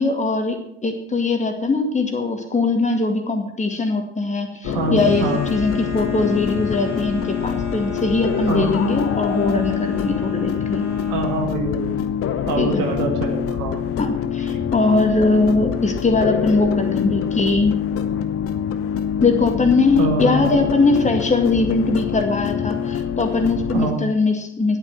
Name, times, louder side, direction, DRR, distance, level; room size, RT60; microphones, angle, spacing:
voice 1, 0.0-10.8 12.6-12.8 14.0-17.8 19.2-24.8, left 3 dB, 20° left, 4 dB, 2.1 m, -21 dB
sound 1, 4.6-23.9, left 8 dB, 40° left, 1.0 m, -25 dB
voice 2, 4.6-5.4 8.5-8.7 11.1-11.9 12.4-13.8 20.0-20.6 23.7-24.0, right 3 dB, 65° right, 3 dB, 2.2 m, -25 dB
sound 2, 4.9-11.5, equal, 85° right, 3.2 m, -38 dB
11.0 x 8.9 x 6.1 m, 0.76 s
figure-of-eight pair, 55°, 34 cm